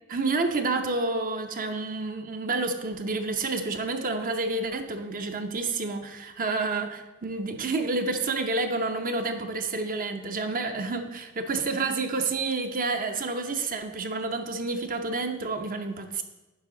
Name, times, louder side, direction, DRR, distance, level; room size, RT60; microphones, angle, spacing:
voice 1, 0.1-16.2, right 3 dB, 40° right, 7 dB, 0.7 m, -29 dB
9.9 x 5.8 x 3.8 m, 1.1 s
head